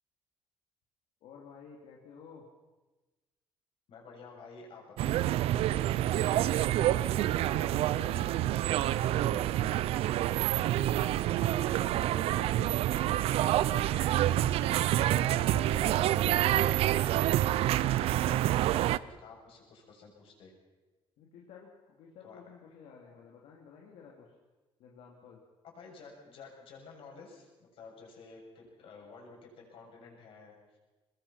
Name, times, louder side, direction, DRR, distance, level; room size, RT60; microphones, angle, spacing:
voice 1, 1.2-2.5 6.3-6.8 7.1-9.7 14.4-15.0 21.2-24.3 24.8-25.4, left 6 dB, 85° left, -1 dB, 3.2 m, -52 dB
voice 2, 3.9-5.2 10.8-14.6 14.9-17.3 17.6-20.5 22.2-22.4 25.6-30.8, left 4 dB, 65° left, -1 dB, 7.5 m, -51 dB
sound 1, 5.0-19.0, right 13 dB, 80° right, 0.6 m, -27 dB
23.5 x 21.5 x 5.9 m, 1.2 s
cardioid pair, 125°, 10 cm